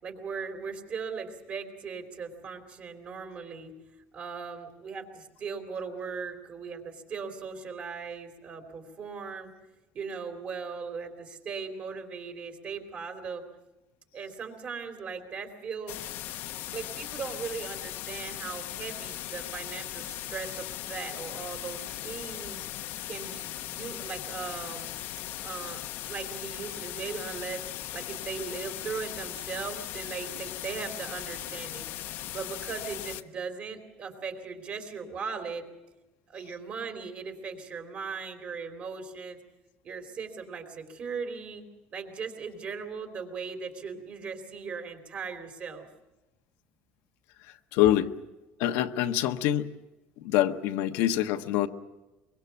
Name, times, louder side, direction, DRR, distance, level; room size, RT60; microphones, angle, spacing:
voice 1, 0.0-3.7 4.1-9.5 9.9-13.4 14.1-16.1 16.7-22.6 23.0-24.9 25.4-25.8 26.1-27.6 27.9-31.9 32.3-35.7 36.3-39.4 39.8-45.9, right 5 dB, 35° right, 5 dB, 3.4 m, -38 dB
sound 1, 15.9-33.2, left 13 dB, 60° left, 1.0 m, -38 dB
voice 2, 47.7-48.1 48.6-49.7 50.2-51.7, left 12 dB, 80° left, 6 dB, 1.2 m, -25 dB
24.0 x 23.5 x 7.1 m, 1.0 s
cardioid pair, 160°, 4 cm